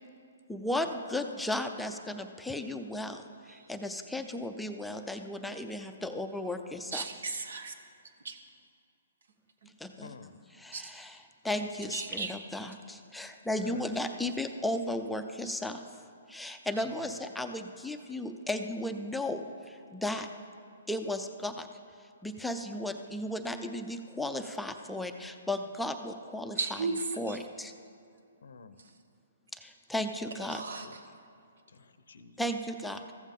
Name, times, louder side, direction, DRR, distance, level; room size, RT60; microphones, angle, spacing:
voice 1, 0.5-7.0 9.8-10.1 10.6-11.2 11.4-15.8 16.3-20.3 20.9-21.7 22.2-26.6 27.2-27.7 29.5-30.6 32.4-33.1, left 1 dB, 5° left, 6 dB, 0.5 m, -35 dB
voice 2, 6.9-7.7 8.2-8.4 9.6-9.7 10.7-10.9 11.9-12.4 26.5-27.4 28.8-28.9 30.5-31.0, right 4 dB, 75° right, 6 dB, 1.2 m, -36 dB
voice 3, 10.0-10.4 11.6-12.0 13.5-13.8 16.8-17.2 28.4-28.8 30.5-30.9 31.7-32.4, left 5 dB, 75° left, 12 dB, 0.6 m, -50 dB
14.5 x 7.2 x 3.7 m, 2.4 s
hypercardioid pair, 140°, 0 cm